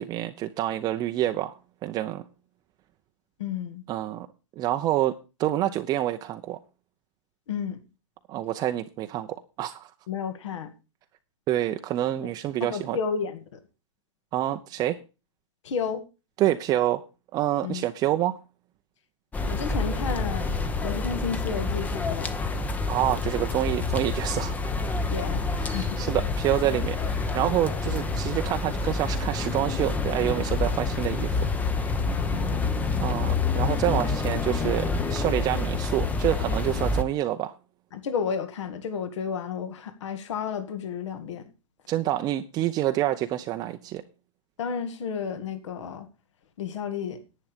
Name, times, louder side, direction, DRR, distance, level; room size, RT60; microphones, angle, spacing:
voice 1, 0.0-1.5 1.8-2.2 3.9-4.3 4.6-6.6 8.3-9.9 11.5-13.0 14.3-15.0 16.4-17.0 17.3-18.4 22.9-24.5 25.5-31.4 33.0-37.5 41.9-44.0, right 13 dB, 25° right, 0.7 m, -27 dB
voice 2, 3.4-3.8 7.5-7.8 10.1-10.7 12.6-13.6 15.6-16.0 17.6-17.8 19.5-20.5 20.8-22.7 25.1-26.0 32.0-32.8 37.9-41.4 44.6-46.1 46.6-47.2, left 6 dB, 65° left, 2.0 m, -32 dB
sound 1, 19.3-37.0, left 3 dB, 10° left, 0.8 m, -28 dB
10.5 x 9.4 x 5.1 m
hypercardioid pair, 135°, 17 cm